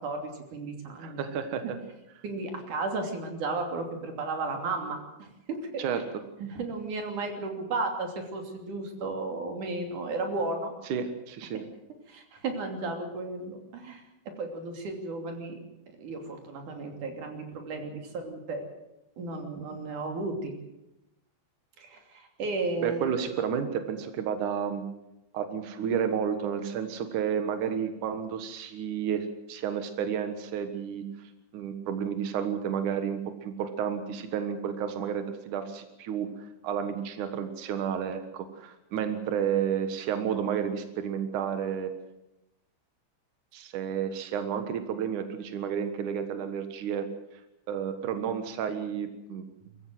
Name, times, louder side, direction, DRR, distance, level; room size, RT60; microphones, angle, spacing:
voice 1, 0.0-1.2 2.2-5.8 6.4-10.7 12.1-15.6 15.9-18.7 19.2-20.5 21.8-23.1, right 3 dB, 45° right, 4 dB, 3.8 m, -34 dB
voice 2, 1.0-1.8 5.8-6.0 10.9-11.6 22.8-24.9 25.3-31.1 31.5-41.9 43.5-47.1 47.7-49.4, right 8 dB, 80° right, 8 dB, 1.8 m, -31 dB
25.0 x 14.5 x 7.8 m, 0.90 s
omnidirectional pair, 5.9 m